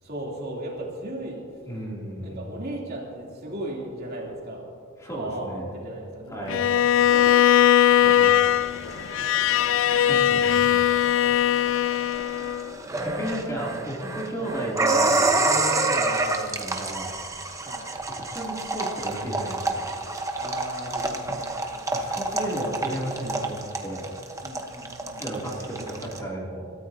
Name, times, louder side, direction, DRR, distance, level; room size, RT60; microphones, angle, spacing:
voice 1, 0.0-1.7 2.2-4.6 5.1-7.6 8.1-8.2 10.9-11.7 15.6-15.9 17.6-17.9 20.3-21.7 24.4-25.2, right 1 dB, 50° right, -3 dB, 3.0 m, -37 dB
voice 2, 1.7-2.4 5.0-5.6 6.3-6.6 8.0-8.6 10.0-10.9 13.0-17.1 18.1-19.9 21.9-24.1 25.2-26.7, right 1 dB, 15° left, -4 dB, 2.8 m, -34 dB
Bowed string instrument, 6.5-12.7, left 11 dB, 65° left, 0.3 m, -20 dB
sound 1, 7.1-26.2, right 2 dB, 15° right, 1.0 m, -29 dB
26.0 x 13.5 x 2.8 m, 2.4 s
head